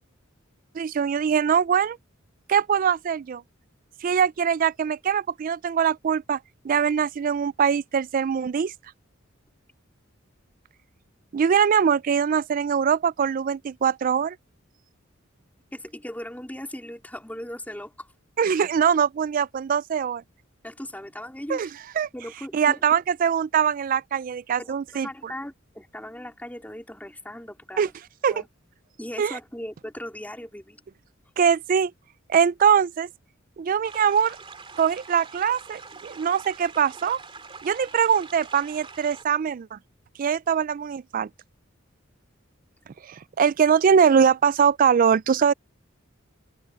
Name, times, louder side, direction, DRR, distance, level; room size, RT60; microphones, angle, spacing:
voice 1, 0.7-2.0 2.5-3.4 4.0-6.4 6.6-8.7 11.3-14.4 18.4-20.2 21.5-21.7 22.0-22.1 22.5-25.3 27.8-27.9 28.2-28.4 29.2-29.4 31.4-31.9 32.3-33.1 33.6-34.4 34.8-37.2 37.6-39.8 40.2-41.3 43.0-45.5, right 7 dB, 45° right, 0.3 m, -22 dB
voice 2, 15.7-18.1 20.6-21.7 22.1-22.8 24.6-24.8 25.0-27.9 28.3-28.5 29.0-30.8, left 1 dB, 10° left, 3.8 m, -38 dB
sound 1, 33.8-39.2, right 4 dB, 25° right, 2.6 m, -44 dB
open air
head